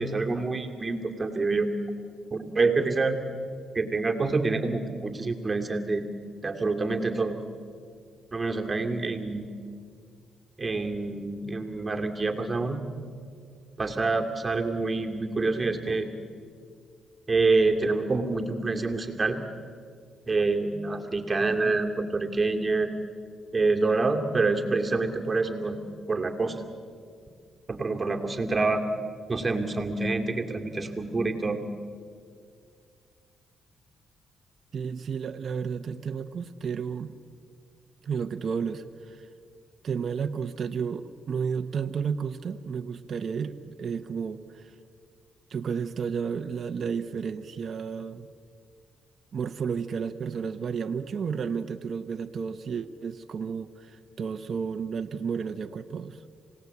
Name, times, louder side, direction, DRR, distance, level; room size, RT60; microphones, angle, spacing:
voice 1, 0.0-1.7 2.3-3.2 3.7-6.0 6.4-7.4 8.3-9.5 10.6-12.8 13.8-16.1 17.3-19.4 20.3-22.9 23.5-25.8 26.1-26.6 27.7-28.8 29.3-31.6, right 3 dB, 25° right, 3 dB, 2.5 m, -27 dB
voice 2, 34.7-37.1 38.0-39.3 39.8-44.7 45.5-48.3 49.3-56.2, right 6 dB, 55° right, 7 dB, 0.9 m, -32 dB
27.0 x 18.0 x 8.4 m, 2.2 s
cardioid pair, 85°, 0 cm